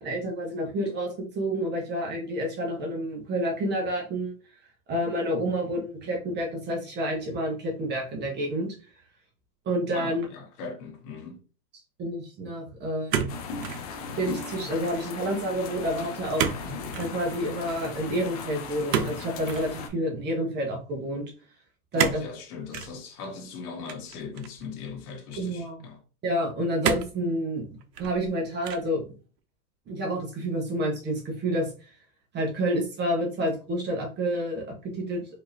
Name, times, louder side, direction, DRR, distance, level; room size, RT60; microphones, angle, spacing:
voice 1, 0.0-4.3 4.9-8.7 9.6-10.3 12.0-13.2 14.2-16.4 17.0-21.2 21.9-22.2 25.4-25.8 26.2-27.7 28.0-29.1 29.9-31.9 32.3-35.2, equal, 20° right, 1.1 m, -29 dB
voice 2, 9.9-11.4 21.9-26.0, left 5 dB, 60° left, 1.6 m, -39 dB
sound 1, 13.1-13.9 14.2-14.6 16.4-16.6 16.9-17.1 18.9-19.7 22.0-22.3 22.7-22.9 23.9-24.6 25.3-25.4 26.8-27.2 27.8-28.3 28.6-29.0, right 8 dB, 75° right, 0.9 m, -29 dB
sound 2, 13.3-19.9, left 4 dB, 25° left, 0.3 m, -37 dB
4.7 x 2.9 x 2.7 m
hypercardioid pair, 135°, 49 cm